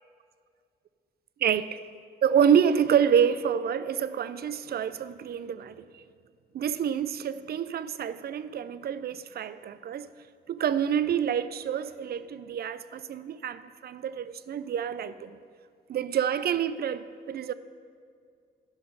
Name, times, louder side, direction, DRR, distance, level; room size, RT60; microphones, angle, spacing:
voice 1, 1.4-1.8 2.2-6.0 6.5-10.1 10.5-15.4 15.9-17.5, right 8 dB, 50° right, 0.4 m, -27 dB
11.5 x 5.6 x 5.6 m
supercardioid pair, 55°, 20 cm